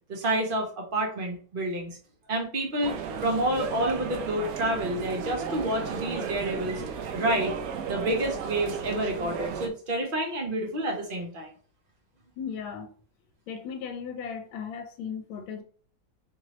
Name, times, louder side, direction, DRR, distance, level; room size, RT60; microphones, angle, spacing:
voice 1, 0.1-2.0 2.3-2.9 3.2-6.8 7.1-7.5 7.9-11.5, right 1 dB, 45° right, 0.6 m, -29 dB
sound 1, 2.8-9.7, right 6 dB, 90° right, 0.7 m, -34 dB
voice 2, 12.4-12.9 13.5-15.6, left 7 dB, 80° left, 1.5 m, -36 dB
4.4 x 2.8 x 3.1 m
omnidirectional pair, 2.3 m